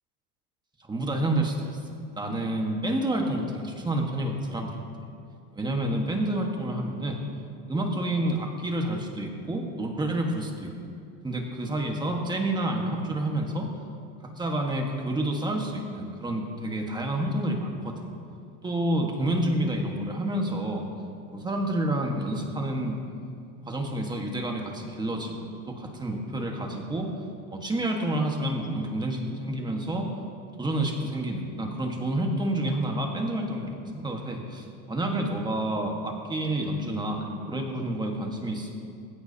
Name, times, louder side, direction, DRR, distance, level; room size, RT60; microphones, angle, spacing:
voice 1, 0.9-1.8 2.2-4.8 5.5-7.2 7.7-10.7 11.2-13.7 14.4-18.1 18.6-20.9 21.3-23.0 23.7-25.3 25.7-27.1 27.5-30.1 30.6-38.7, right 1 dB, 10° right, 1 dB, 1.5 m, -29 dB
19.0 x 16.5 x 2.9 m, 2.5 s
supercardioid pair, 140°, 49 cm